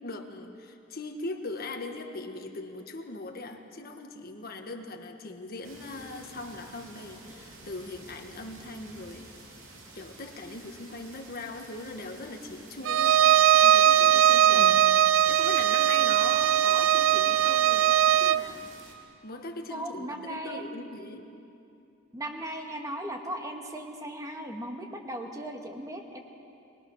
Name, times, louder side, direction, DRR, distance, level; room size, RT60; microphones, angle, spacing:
voice 1, 0.0-9.3 9.9-13.2 13.6-14.9 15.2-18.7 19.2-21.3, left 2 dB, 50° left, 4 dB, 1.6 m, -40 dB
sound 1, 5.6-18.9, right 2 dB, 85° right, 3.2 m, -50 dB
Bowed string instrument, 12.9-18.5, right 10 dB, 70° right, 0.4 m, -20 dB
voice 2, 19.7-20.7 22.1-26.2, right 1 dB, 15° right, 2 dB, 1.8 m, -37 dB
23.0 x 20.0 x 6.4 m, 2.6 s
head